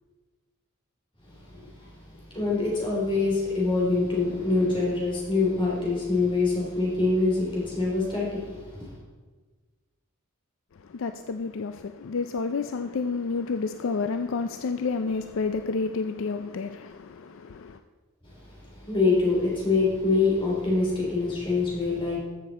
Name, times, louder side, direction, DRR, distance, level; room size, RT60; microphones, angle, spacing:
voice 1, 1.2-8.9 18.2-22.2, left 3 dB, 25° left, 3.4 m, -25 dB
voice 2, 10.7-17.8, left 4 dB, 60° left, 0.4 m, -30 dB
14.0 x 6.7 x 4.2 m
head